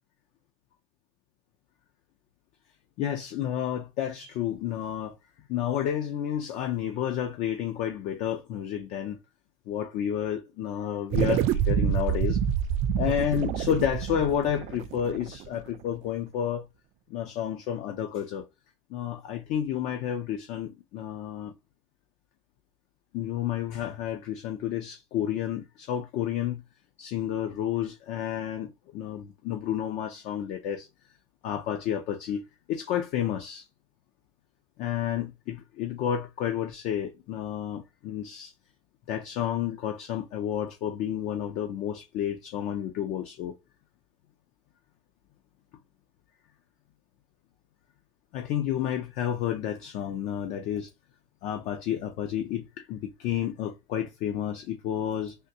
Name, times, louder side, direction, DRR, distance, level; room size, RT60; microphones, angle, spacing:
voice 1, 3.0-5.2 5.5-9.2 9.7-12.4 13.0-16.7 17.1-18.4 18.9-21.5 23.1-26.6 27.0-30.9 31.4-33.7 34.8-38.5 39.1-43.6 48.3-50.9 51.4-55.3, left 10 dB, 55° left, 0.6 m, -31 dB
sound 1, 11.1-15.8, right 9 dB, 45° right, 0.4 m, -27 dB
3.6 x 2.5 x 2.7 m
supercardioid pair, 115°, 15 cm